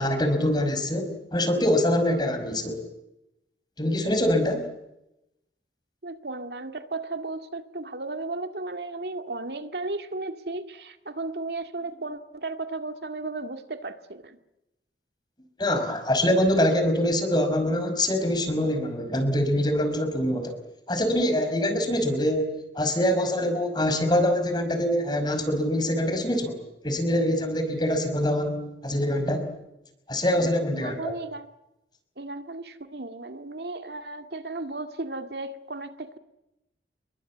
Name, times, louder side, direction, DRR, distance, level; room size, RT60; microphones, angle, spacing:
voice 1, 0.0-2.8 3.8-4.7 15.6-20.6 20.9-29.5 30.1-31.1, left 1 dB, 25° left, 8 dB, 5.3 m, -24 dB
voice 2, 6.0-14.4 30.4-31.5 32.2-36.2, right 2 dB, 65° right, 8 dB, 2.1 m, -35 dB
29.0 x 22.5 x 8.5 m, 0.88 s
head